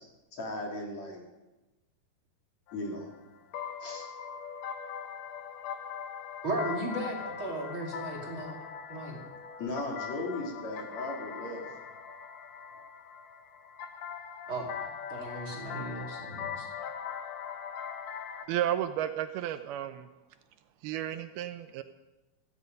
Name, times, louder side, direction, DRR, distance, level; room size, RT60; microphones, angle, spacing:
voice 1, 0.3-1.2 2.7-3.1 3.8-4.1 9.6-11.6, left 2 dB, 45° left, 0 dB, 3.7 m, -37 dB
sound 1, 2.7-18.5, left 7 dB, 80° left, 1.5 m, -41 dB
voice 2, 6.4-8.6 8.9-9.2 14.5-16.7, right 1 dB, 35° right, -1 dB, 3.0 m, -36 dB
voice 3, 18.5-20.1 20.8-21.8, right 11 dB, 80° right, 10 dB, 2.6 m, -32 dB
17.0 x 15.5 x 5.3 m, 1.1 s
omnidirectional pair, 4.6 m